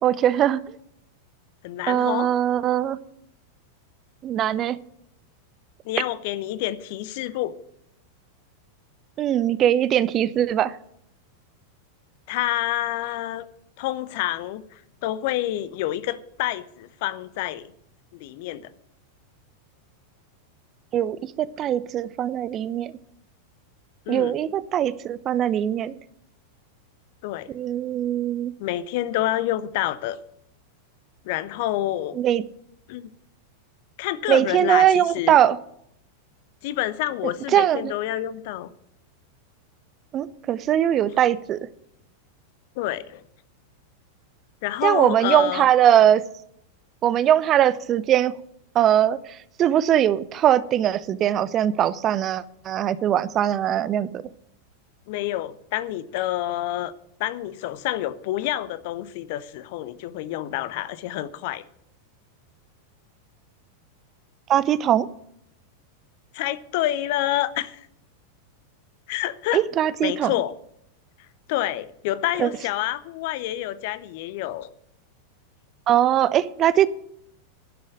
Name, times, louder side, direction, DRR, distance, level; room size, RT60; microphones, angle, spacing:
voice 1, 0.0-0.8 1.9-3.0 4.2-4.8 9.2-10.8 20.9-22.9 24.1-26.0 27.5-28.5 32.1-32.4 34.3-35.6 37.2-37.9 40.1-41.7 44.8-46.2 47.0-48.3 48.7-54.1 64.5-65.1 69.5-70.3 72.4-72.5 75.9-76.9, right 11 dB, 30° right, 0.6 m, -21 dB
voice 2, 1.6-2.3 5.8-7.5 12.3-13.5 13.8-17.7 18.1-18.7 24.1-24.3 27.2-27.5 28.6-30.2 31.2-32.2 32.9-33.0 34.0-35.4 36.6-38.7 42.8-43.2 44.6-45.7 55.1-56.9 57.2-61.6 66.3-67.9 69.1-69.6 70.0-70.5 71.5-74.7, left 14 dB, 50° left, 0.7 m, -28 dB
11.0 x 6.4 x 8.9 m
figure-of-eight pair, 90°, 0 cm